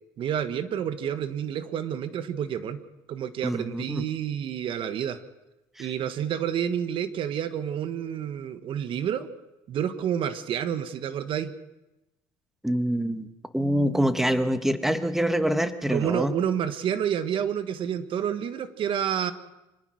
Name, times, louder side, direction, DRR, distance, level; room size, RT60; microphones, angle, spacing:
voice 1, 0.2-2.8 3.1-5.2 5.8-9.3 9.7-11.5 15.9-19.3, right 9 dB, 55° right, 11 dB, 1.5 m, -29 dB
voice 2, 3.4-4.1 5.8-5.9 12.6-13.3 13.5-16.3, equal, 5° right, 10 dB, 1.6 m, -25 dB
25.5 x 19.0 x 6.4 m, 0.98 s
supercardioid pair, 100°, 11 cm